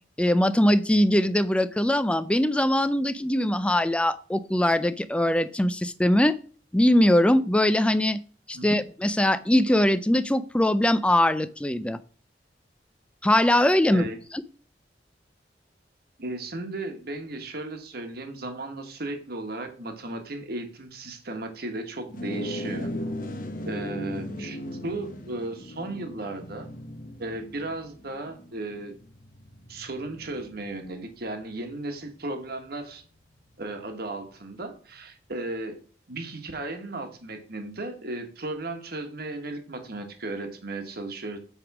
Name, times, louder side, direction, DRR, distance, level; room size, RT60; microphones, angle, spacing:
voice 1, 0.2-6.3 6.7-8.2 8.5-12.0 13.2-14.0, left 1 dB, 5° left, 14 dB, 0.4 m, -21 dB
voice 2, 16.2-22.9 23.6-26.7 27.2-28.9 29.7-33.0 33.6-35.8 36.1-41.4, right 2 dB, 55° right, 5 dB, 1.4 m, -35 dB
sound 1, 22.1-31.7, left 1 dB, 50° left, 0.9 m, -37 dB
8.2 x 3.5 x 5.9 m, 0.41 s
head